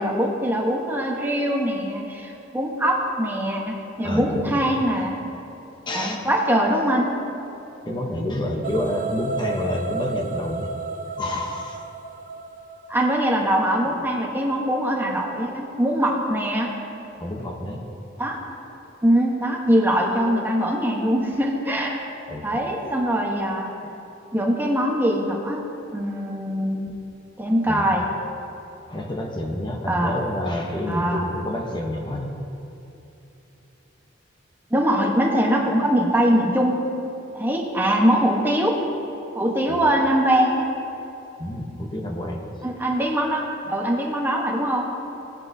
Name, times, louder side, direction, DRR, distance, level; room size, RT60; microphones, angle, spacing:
voice 1, 0.0-5.2 5.9-7.1 12.9-16.7 18.2-18.4 19.0-22.0 22.4-23.8 24.3-25.6 25.9-27.0 27.4-28.1 29.9-30.1 30.9-31.2 34.7-36.8 37.3-38.8 39.3-40.7 42.6-44.8, equal, 10° right, -1 dB, 1.1 m, -22 dB
voice 2, 4.0-4.6 5.9-6.2 7.8-10.7 11.1-11.9 13.8-14.1 17.2-17.9 22.3-22.5 23.8-24.0 27.7-28.0 28.9-32.3 39.7-39.8 41.4-42.5 43.7-43.8, left 1 dB, 25° left, 0 dB, 0.9 m, -28 dB
sound 1, 8.6-13.7, right 3 dB, 45° right, 0.6 m, -33 dB
17.5 x 9.5 x 2.7 m, 2.9 s
head